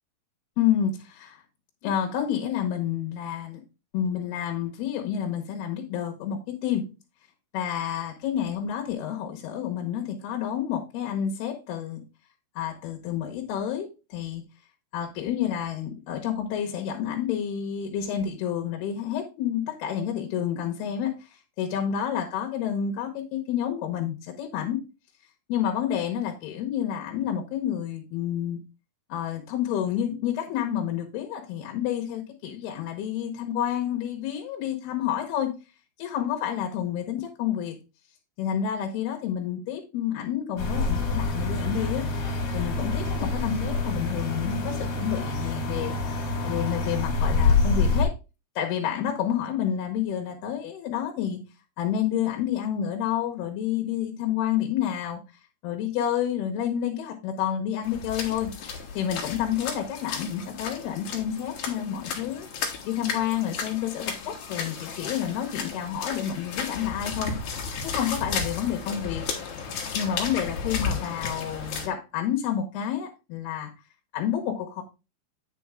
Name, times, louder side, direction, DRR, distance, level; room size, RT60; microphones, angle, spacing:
voice 1, 0.6-1.4 1.8-3.6 3.9-6.8 7.5-12.0 12.6-14.4 14.9-21.1 21.6-24.8 25.5-28.6 29.1-35.5 36.0-37.8 38.4-42.0 42.5-46.0 46.4-48.1 48.6-51.4 51.8-55.2 55.6-62.5 62.8-67.3 67.8-69.2 69.9-73.7 74.1-74.8, left 9 dB, 75° left, 2 dB, 3.0 m, -29 dB
sound 1, 40.6-48.0, left 3 dB, 40° left, 2.7 m, -26 dB
sound 2, 57.8-71.9, left 5 dB, 60° left, 2.4 m, -34 dB
8.8 x 5.4 x 3.6 m, 0.28 s
omnidirectional pair, 4.8 m